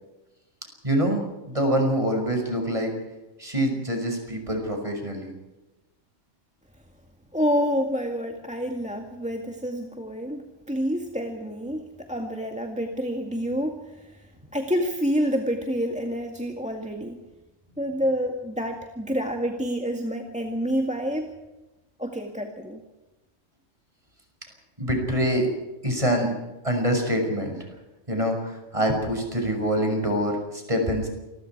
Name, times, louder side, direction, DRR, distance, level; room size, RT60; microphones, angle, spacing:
voice 1, 0.8-2.9 3.4-5.3 24.8-25.5 25.8-26.3 26.6-27.6 28.1-31.1, equal, 25° right, 3 dB, 6.4 m, -25 dB
voice 2, 7.3-10.4 10.7-14.2 14.5-17.2 17.8-21.3 22.0-22.8, equal, 5° right, 3 dB, 2.0 m, -28 dB
28.0 x 21.5 x 4.8 m, 1.1 s
omnidirectional pair, 1.3 m